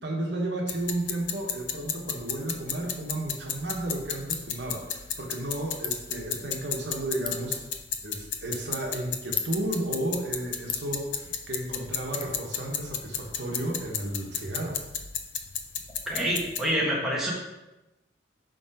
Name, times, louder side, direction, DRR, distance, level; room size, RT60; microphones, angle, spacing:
voice 1, 0.0-7.6 8.0-14.8, right 1 dB, 70° right, 0 dB, 1.3 m, -33 dB
sound 1, 0.7-16.6, left 8 dB, 85° left, 0.6 m, -34 dB
Ratchet pawl, 3.1-12.2, left 7 dB, 25° left, 0.6 m, -43 dB
voice 2, 16.0-17.3, equal, ahead, -5 dB, 1.5 m, -27 dB
5.7 x 5.3 x 5.0 m, 1.0 s
head